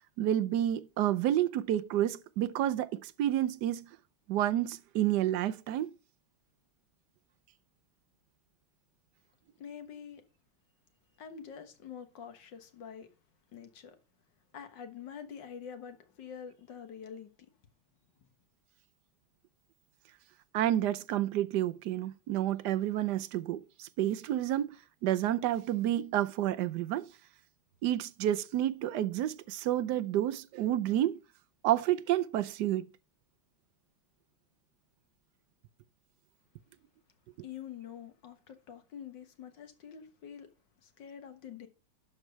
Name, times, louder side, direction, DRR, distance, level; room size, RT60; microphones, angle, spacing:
voice 1, 0.2-3.9 4.3-5.9 20.5-24.8 25.0-27.1 27.8-31.2 31.6-32.9, right 12 dB, 70° right, 1.2 m, -30 dB
voice 2, 9.6-10.2 11.2-13.1 13.5-14.0 14.5-17.5 37.4-40.5 40.8-41.7, left 8 dB, 65° left, 2.0 m, -46 dB
12.0 x 4.7 x 6.7 m
omnidirectional pair, 2.1 m